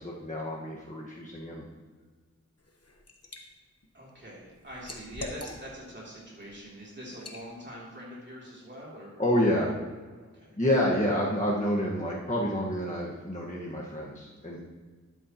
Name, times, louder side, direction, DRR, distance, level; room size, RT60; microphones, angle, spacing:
voice 1, 0.0-1.6 9.2-9.7 10.6-14.6, equal, 25° left, -4 dB, 1.6 m, -28 dB
Liquid, 2.6-3.4 3.8-5.9 6.4-6.6 7.1-7.4, left 2 dB, 55° left, 1.3 m, -43 dB
voice 2, 3.9-9.5 10.2-10.6, equal, 35° right, -6 dB, 3.1 m, -44 dB
12.5 x 8.6 x 3.0 m, 1.4 s
wide cardioid pair, 50°, 30 cm